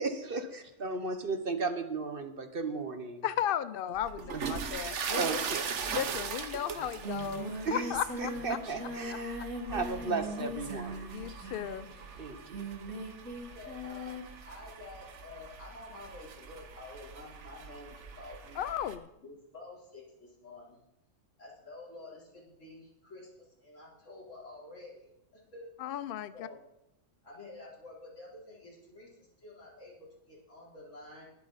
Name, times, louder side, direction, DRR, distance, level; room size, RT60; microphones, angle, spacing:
voice 1, 0.0-3.2 4.3-4.4 5.1-5.7 7.6-7.8 8.2-9.4 9.7-11.1 12.2-12.6, right 3 dB, 50° right, 8 dB, 1.2 m, -35 dB
voice 2, 3.2-5.2 5.9-8.6 9.7-9.8 11.1-11.9 18.5-19.1 25.8-26.5, left 10 dB, 60° left, 14 dB, 0.6 m, -35 dB
sound 1, 4.0-19.0, right 6 dB, 70° right, 1.3 m, -41 dB
Singing, 6.3-6.4 6.6-14.3, right 1 dB, 90° right, 2.3 m, -40 dB
voice 3, 13.5-14.2 14.4-18.6 19.2-20.8 21.4-25.7 26.3-26.6 27.2-31.2, left 2 dB, 80° left, -5 dB, 4.4 m, -49 dB
20.5 x 7.9 x 4.1 m, 0.85 s
omnidirectional pair, 1.3 m